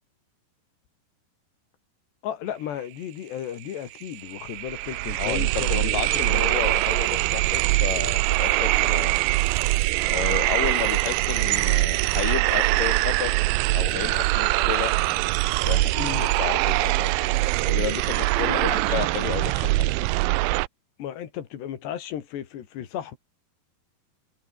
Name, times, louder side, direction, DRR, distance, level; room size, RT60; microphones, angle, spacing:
voice 1, 2.2-6.0 6.3-6.5 16.0-16.3 18.4-18.7 21.0-23.2, left 10 dB, 90° left, 4.6 m, -34 dB
sound 1, 3.7-3.8 4.0-20.7, right 21 dB, 80° right, 2.2 m, -23 dB
voice 2, 5.2-9.2 10.1-13.4 13.7-14.9 15.6-15.9 16.2-17.1 17.7-19.9, left 14 dB, 65° left, 2.7 m, -32 dB
sound 2, 12.5-17.8, left 5 dB, 35° left, 3.5 m, -46 dB
omnidirectional pair, 4.7 m